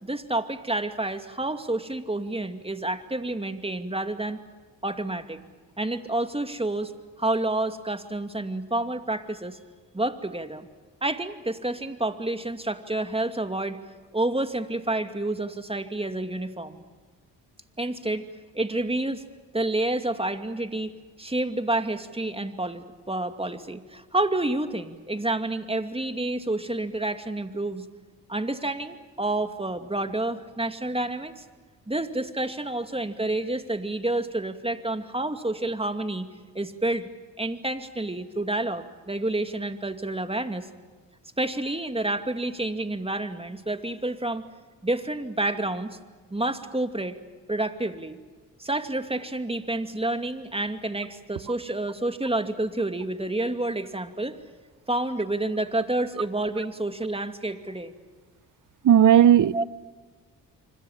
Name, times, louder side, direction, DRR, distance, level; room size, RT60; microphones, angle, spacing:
voice 1, 0.0-4.4 4.8-5.4 5.8-6.9 7.2-9.6 9.9-10.7 11.0-13.8 14.1-16.8 17.8-18.3 18.5-19.2 19.5-27.9 28.3-31.4 31.9-36.3 36.5-37.1 37.4-40.7 41.4-44.5 44.8-46.0 46.3-47.2 47.5-48.2 48.6-54.4 54.9-57.9 59.5-59.6, right 2 dB, 15° right, 2.6 m, -29 dB
voice 2, 58.8-59.6, right 10 dB, 50° right, 0.9 m, -16 dB
26.0 x 25.5 x 7.4 m
hypercardioid pair, 50°, 40 cm